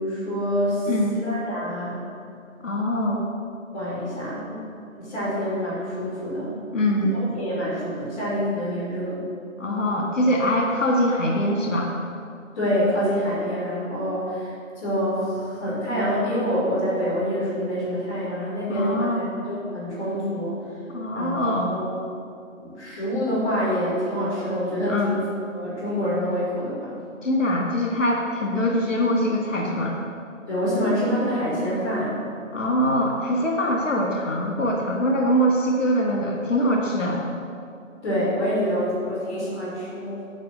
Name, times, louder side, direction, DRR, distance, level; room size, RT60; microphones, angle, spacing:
voice 1, 0.0-2.0 3.7-4.6 4.9-6.6 7.0-9.2 12.5-14.5 14.8-19.1 19.5-20.6 21.1-21.3 21.7-21.9 22.6-25.3 25.5-26.9 30.5-32.1 38.0-40.2, equal, 5° left, -16 dB, 2.9 m, -26 dB
voice 2, 0.9-1.2 2.6-3.2 6.7-7.2 9.6-11.9 18.7-19.2 20.9-21.7 24.9-25.1 27.2-30.0 32.5-37.2, equal, 65° left, -1 dB, 1.9 m, -23 dB
10.5 x 5.4 x 7.9 m, 2.4 s
figure-of-eight pair, 175°, 41 cm